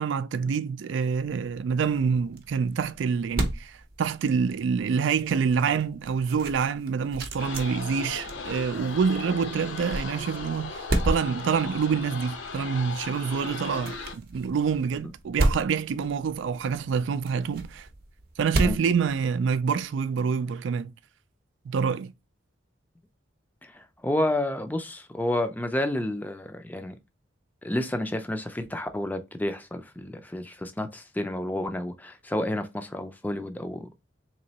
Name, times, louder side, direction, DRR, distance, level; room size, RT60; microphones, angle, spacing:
voice 1, 0.0-17.9 18.4-20.9 21.7-22.1, right 6 dB, 70° right, 0.3 m, -27 dB
sound 1, 1.1-19.8, right 1 dB, 50° right, 0.7 m, -34 dB
sound 2, 7.4-14.1, left 4 dB, 75° left, 0.8 m, -37 dB
voice 2, 23.6-27.0 27.6-33.9, left 1 dB, 10° left, 0.4 m, -30 dB
3.7 x 3.0 x 2.8 m
head